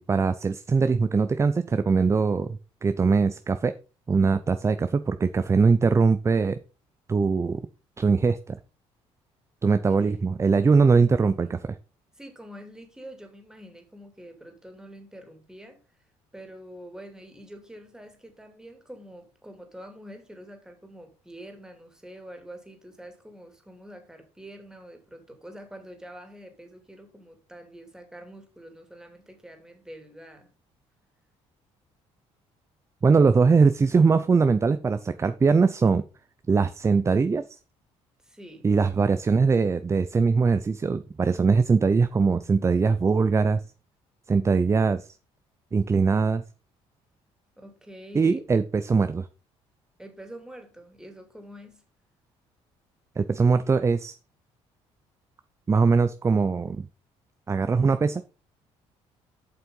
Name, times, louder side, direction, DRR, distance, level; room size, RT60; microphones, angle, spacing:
voice 1, 0.0-3.7 4.1-6.6 7.1-7.6 8.0-8.6 9.6-11.8 33.0-36.0 36.5-37.4 38.6-43.6 44.3-45.1 45.7-46.4 48.1-49.3 53.2-54.2 55.7-56.9 57.5-58.2, right 4 dB, 25° right, 0.5 m, -21 dB
voice 2, 10.9-11.5 12.1-15.8 16.3-30.5 38.2-38.7 47.6-48.4 50.0-51.8, equal, 5° right, 2.8 m, -46 dB
7.7 x 5.6 x 5.4 m
cardioid pair, 90°, 12 cm